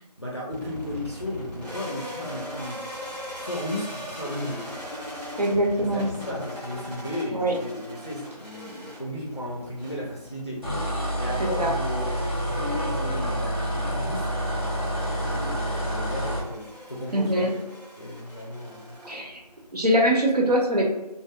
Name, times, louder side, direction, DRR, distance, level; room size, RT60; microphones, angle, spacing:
voice 1, 0.2-2.8 3.4-4.7 5.8-10.6 11.2-14.4 14.8-17.6 18.0-19.0, left 1 dB, 40° left, -3 dB, 0.4 m, -35 dB
sound 1, 0.5-19.7, equal, 85° right, 1.3 m, -40 dB
voice 2, 5.4-6.1 7.3-7.5 11.4-11.7 17.1-17.5 19.0-19.4 19.7-20.9, right 1 dB, 70° right, -1 dB, 0.7 m, -23 dB
sound 2, 10.6-16.5, equal, 35° right, 0.6 m, -28 dB
2.6 x 2.2 x 2.2 m, 0.99 s
figure-of-eight pair, 180°, 21 cm